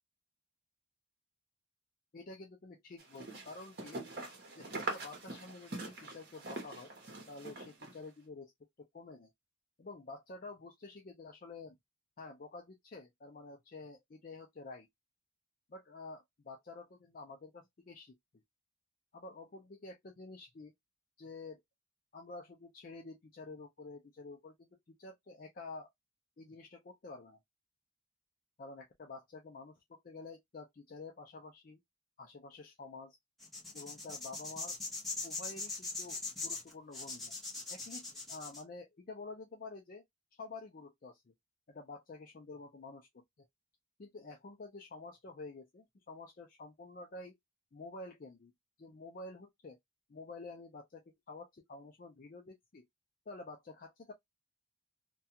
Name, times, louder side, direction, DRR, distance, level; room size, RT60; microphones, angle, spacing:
voice 1, 2.1-4.0 4.6-6.9 7.3-8.5 8.8-9.3 9.8-11.8 12.2-14.9 15.7-18.2 19.1-20.7 21.2-21.6 22.1-25.9 26.4-27.4 28.6-31.8 32.2-33.2 33.7-34.8 35.2-37.3 37.7-40.0 40.3-41.3 41.7-43.5 44.0-47.3 47.7-48.5 48.8-49.8 50.1-52.9 53.3-54.1, left 3 dB, 45° left, 0.4 m, -49 dB
sound 1, 3.0-8.0, right 2 dB, 50° right, 0.9 m, -43 dB
sound 2, 33.4-38.6, left 3 dB, ahead, 0.8 m, -41 dB
2.3 x 2.2 x 2.7 m
head